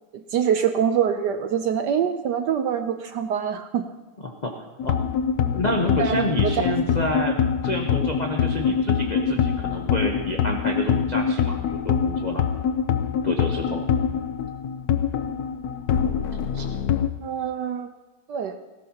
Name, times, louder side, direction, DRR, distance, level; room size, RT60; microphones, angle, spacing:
voice 1, 0.1-3.9 6.0-6.5 17.2-17.9 18.3-18.6, right 8 dB, 70° right, 8 dB, 1.0 m, -25 dB
voice 2, 4.2-4.5 4.8-5.0 5.5-7.4 7.6-12.5 13.2-13.9 16.5-16.6, left 1 dB, 55° left, 0 dB, 0.4 m, -28 dB
sound 1, 4.8-17.1, left 7 dB, 85° left, 0.8 m, -24 dB
18.5 x 16.5 x 2.9 m, 1.1 s
omnidirectional pair, 2.4 m